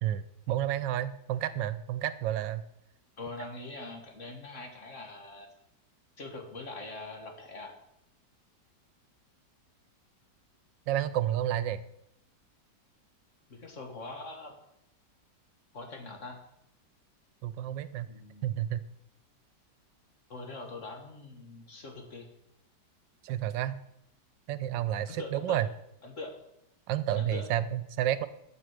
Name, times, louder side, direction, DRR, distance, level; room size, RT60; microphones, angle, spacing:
voice 1, 0.0-2.6 10.9-11.8 17.4-18.1 18.4-18.9 23.2-23.8 24.5-25.7 26.9-28.3, right 11 dB, 85° right, 15 dB, 1.3 m, -30 dB
voice 2, 3.2-5.5 6.2-7.7 13.5-14.6 15.7-16.4 18.1-18.6 20.3-22.3 25.0-25.6 26.0-26.3 27.2-27.5, left 2 dB, 45° left, 3 dB, 1.9 m, -43 dB
8.0 x 7.6 x 6.6 m, 0.79 s
omnidirectional pair, 1.9 m